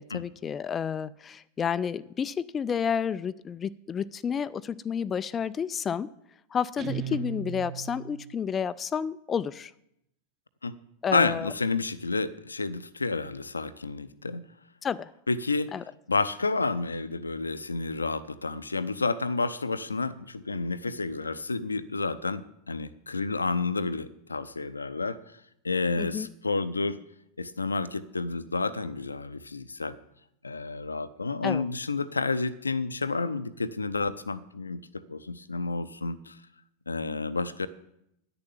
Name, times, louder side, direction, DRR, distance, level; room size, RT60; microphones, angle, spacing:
voice 1, 0.0-6.1 6.5-9.7 11.0-11.5 14.8-15.1 15.7-15.8 26.0-26.3 31.4-31.6, left 7 dB, 20° left, 15 dB, 0.3 m, -30 dB
Guitar, 6.8-8.5, right 9 dB, 30° right, 1.2 m, -37 dB
voice 2, 11.1-14.4 15.3-15.7 16.1-25.2 25.6-27.0 27.4-30.0 30.4-36.4 36.9-37.7, left 3 dB, 80° left, 14 dB, 0.6 m, -30 dB
9.9 x 6.9 x 9.1 m, 0.78 s
figure-of-eight pair, 90°, 0 cm